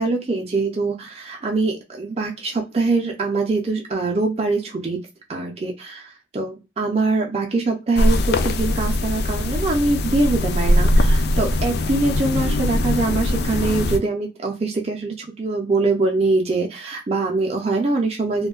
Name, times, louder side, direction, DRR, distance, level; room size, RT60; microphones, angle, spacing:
voice 1, 0.0-5.0 5.3-18.5, right 3 dB, 35° right, 1 dB, 0.4 m, -23 dB
sound 1, 8.0-14.0, left 1 dB, 60° left, 0.3 m, -21 dB
2.5 x 2.2 x 2.3 m, 0.27 s
head